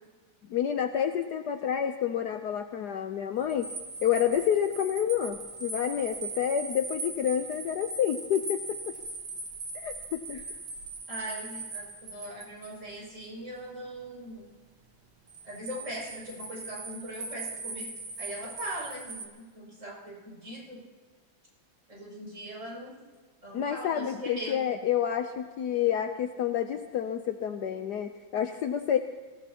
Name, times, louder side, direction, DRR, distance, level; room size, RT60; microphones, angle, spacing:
voice 1, 0.5-3.7 4.0-9.0 9.7-10.4 23.5-29.0, left 9 dB, 65° left, 7 dB, 1.1 m, -29 dB
sound 1, 3.4-12.8 15.3-19.3, right 3 dB, 60° right, 2.0 m, -40 dB
voice 2, 11.1-14.5 15.4-17.9 18.2-20.8 21.9-23.0 23.4-24.6, right 1 dB, 35° right, -6 dB, 7.0 m, -40 dB
25.0 x 16.5 x 2.9 m, 1.4 s
omnidirectional pair, 2.2 m